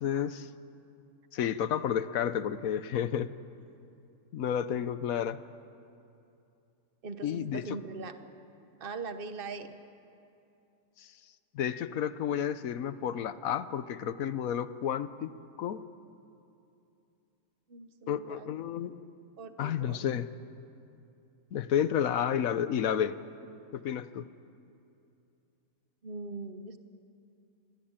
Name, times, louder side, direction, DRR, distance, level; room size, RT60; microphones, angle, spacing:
voice 1, 0.0-0.5 1.3-3.3 4.3-5.4 7.2-7.8 11.0-11.1 11.5-15.3 15.6-15.8 18.1-18.9 19.6-20.3 21.5-23.2 23.7-24.2, left 9 dB, 70° left, 13 dB, 1.3 m, -31 dB
voice 2, 7.0-8.2 8.8-9.7 17.7-18.5 19.4-20.0 26.0-26.8, right 4 dB, 40° right, 9 dB, 1.3 m, -41 dB
26.0 x 20.5 x 8.9 m, 2.7 s
omnidirectional pair, 1.5 m